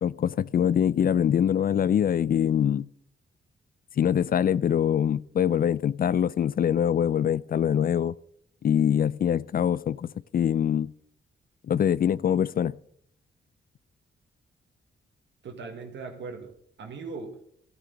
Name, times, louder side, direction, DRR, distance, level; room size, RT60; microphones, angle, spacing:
voice 1, 0.0-2.9 4.0-8.1 8.6-10.9 11.7-12.8, left 9 dB, 50° left, 0.4 m, -24 dB
voice 2, 15.4-17.4, right 4 dB, 75° right, 1.6 m, -39 dB
13.5 x 12.5 x 3.9 m
cardioid pair, 90°, 19 cm